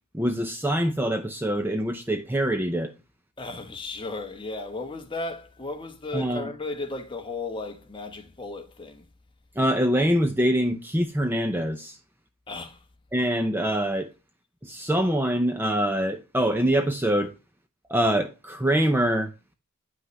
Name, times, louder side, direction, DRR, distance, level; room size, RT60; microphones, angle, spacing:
voice 1, 0.1-2.9 6.1-6.5 9.6-12.0 13.1-14.1 14.6-17.3 17.9-19.3, right 1 dB, 10° right, 0.6 m, -24 dB
voice 2, 3.4-9.0 12.5-12.8, left 2 dB, 20° left, 1.2 m, -35 dB
9.4 x 5.8 x 3.2 m
head